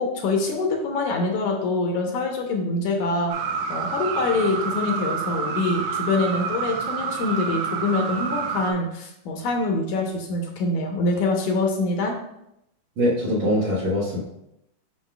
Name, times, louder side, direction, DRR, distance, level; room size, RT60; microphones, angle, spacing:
voice 1, 0.0-3.3 3.7-12.1, left 3 dB, 75° left, 1 dB, 2.2 m, -25 dB
sound 1, 3.3-8.7, right 6 dB, 75° right, 1.8 m, -28 dB
voice 2, 13.0-14.2, equal, 60° right, -10 dB, 2.5 m, -22 dB
7.3 x 5.8 x 2.3 m, 0.81 s
omnidirectional pair, 3.7 m